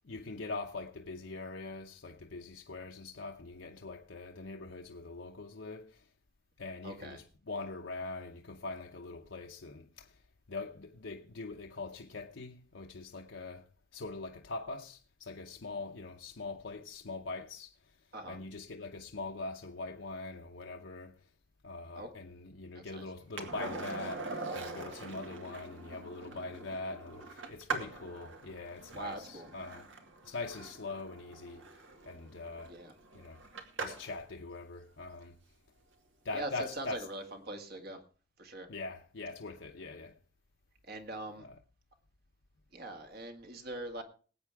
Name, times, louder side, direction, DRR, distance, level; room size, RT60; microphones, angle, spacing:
voice 1, 0.0-6.1 6.6-10.2 10.5-13.7 13.9-17.7 18.3-21.2 21.6-29.8 30.2-31.6 32.0-32.7 33.1-33.4 33.8-35.4 36.2-37.0 38.7-40.1 41.4-41.5, left 3 dB, 65° left, 0.9 m, -42 dB
voice 2, 6.8-7.2 18.1-18.4 22.0-22.1 22.7-23.0 26.2-26.3 28.9-29.5 32.7-32.9 36.3-38.0 38.4-38.7 40.9-41.5 42.7-44.0, right 1 dB, 55° right, 2.0 m, -42 dB
Skateboard, 23.4-34.2 36.8-36.9, right 3 dB, 75° right, 1.9 m, -43 dB
19.5 x 8.8 x 3.5 m
head